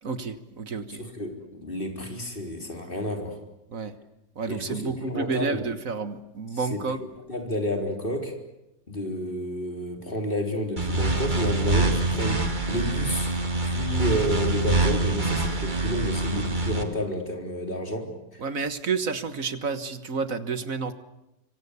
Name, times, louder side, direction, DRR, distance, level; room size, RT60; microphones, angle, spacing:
voice 1, 0.0-1.0 3.7-3.9 4.4-7.0 18.4-20.9, right 4 dB, 50° right, 12 dB, 1.8 m, -30 dB
voice 2, 1.0-3.4 4.5-5.7 6.5-6.8 7.3-8.3 8.9-13.3 13.6-18.4, equal, 30° left, 4 dB, 4.3 m, -30 dB
sound 1, 10.8-16.8, right 2 dB, 25° right, 2.3 m, -25 dB
26.0 x 25.0 x 8.3 m, 0.88 s
omnidirectional pair, 1.9 m